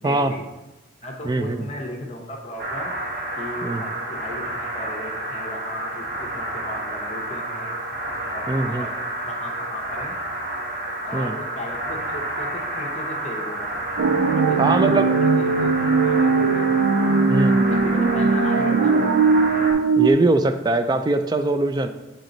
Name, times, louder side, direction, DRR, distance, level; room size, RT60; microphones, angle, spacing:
voice 1, 0.0-0.5 1.0-2.9 3.4-7.8 8.3-8.9 9.3-10.2 11.0-13.8 14.3-16.7 16.9-17.3 17.6-19.3, left 1 dB, 35° left, 0 dB, 0.8 m, -35 dB
voice 2, 1.2-1.6 3.6-3.8 8.5-8.9 11.1-11.3 14.6-15.1 17.3-17.6 20.0-21.9, right 2 dB, 20° right, 9 dB, 0.3 m, -21 dB
sound 1, 2.6-19.7, right 1 dB, 45° right, 1.4 m, -30 dB
sound 2, 14.0-20.1, right 4 dB, 85° right, 0.4 m, -19 dB
8.0 x 4.0 x 4.0 m, 1.0 s
head